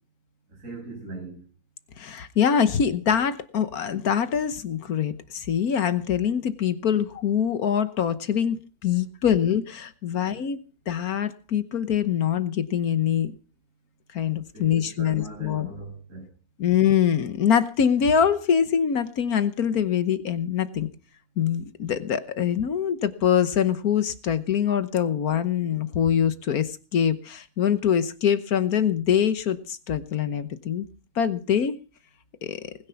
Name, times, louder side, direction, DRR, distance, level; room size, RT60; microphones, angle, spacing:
voice 1, 0.5-1.5 10.1-10.4 14.5-16.3, right 2 dB, 55° right, 7.1 m, -40 dB
voice 2, 2.0-10.6 10.9-13.3 14.1-15.7 16.6-20.9 21.4-30.8 31.1-31.8 32.4-32.7, left 8 dB, 75° left, 1.5 m, -24 dB
20.5 x 10.5 x 5.7 m
omnidirectional pair, 1.6 m